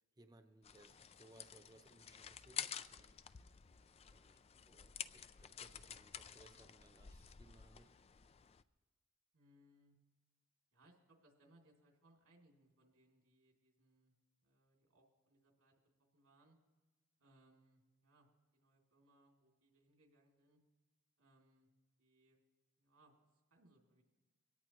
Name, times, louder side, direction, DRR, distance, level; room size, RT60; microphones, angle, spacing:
voice 1, 0.2-3.2 4.1-7.9, right 2 dB, 20° right, 6 dB, 0.8 m, -65 dB
sound 1, 0.6-8.6, left 8 dB, 30° left, 0.4 m, -51 dB
voice 2, 9.3-10.0 10.7-14.1 14.4-15.8 16.1-16.6 17.2-20.6 21.2-21.7 22.0-22.4 22.8-24.0, right 1 dB, 85° right, 0 dB, 3.0 m, -71 dB
24.0 x 17.5 x 3.1 m, 1.2 s
head